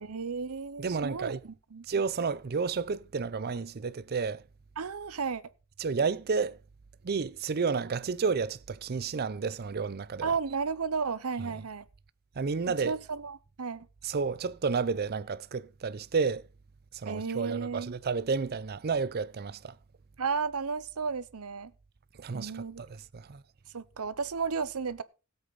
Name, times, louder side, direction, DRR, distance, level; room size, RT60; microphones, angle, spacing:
voice 1, 0.0-1.9 4.8-5.4 10.2-11.9 12.8-13.9 17.0-18.0 20.2-21.7 22.3-22.8 23.7-25.0, right 5 dB, 80° right, 0.8 m, -33 dB
voice 2, 0.8-1.4 1.9-4.4 5.8-6.6 7.0-10.3 12.4-12.9 14.0-16.4 16.9-19.8 22.2-23.4, right 5 dB, 45° right, 0.5 m, -31 dB
17.0 x 8.2 x 4.0 m
head